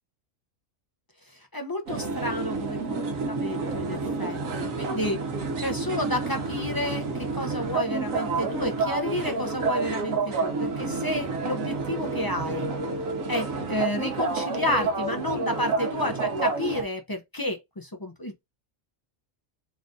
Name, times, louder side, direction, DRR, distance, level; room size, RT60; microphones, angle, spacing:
voice 1, 1.2-5.2 5.6-12.6 13.3-18.4, left 1 dB, 30° left, 0.4 m, -31 dB
sound 1, 1.9-16.8, right 3 dB, 75° right, 1.3 m, -29 dB
4.0 x 2.6 x 3.6 m
omnidirectional pair, 1.4 m